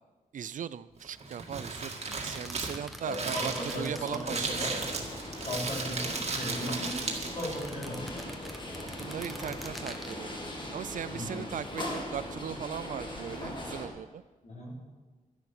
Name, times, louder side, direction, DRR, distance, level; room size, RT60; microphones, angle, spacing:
voice 1, 0.3-4.7 8.8-10.4 10.7-14.2, right 9 dB, 65° right, 17 dB, 0.4 m, -38 dB
Crumpling crinkling, 1.0-7.7, right 3 dB, 50° right, 1.8 m, -35 dB
sound 1, 1.8-5.5 5.8-6.9 7.4-10.2, equal, ahead, 0.8 m, -47 dB
voice 2, 3.0-4.8 5.4-8.2 11.1-11.4 14.4-14.8, equal, 55° left, -4 dB, 3.6 m, -37 dB
sound 2, 3.6-13.9, left 1 dB, 35° left, 1.7 m, -40 dB
11.0 x 10.5 x 6.0 m, 1.3 s
wide cardioid pair, 175°, 14 cm